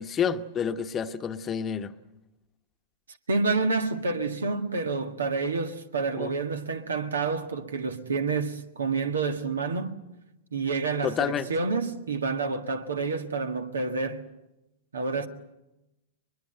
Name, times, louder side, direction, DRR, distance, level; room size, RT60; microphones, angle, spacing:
voice 1, 0.0-1.9 6.2-6.3 11.0-11.5, left 7 dB, 25° left, 1.0 m, -29 dB
voice 2, 3.3-10.0 10.5-14.2 14.9-15.3, right 4 dB, 85° right, 1.7 m, -28 dB
22.0 x 21.5 x 8.0 m
hypercardioid pair, 110°, 0 cm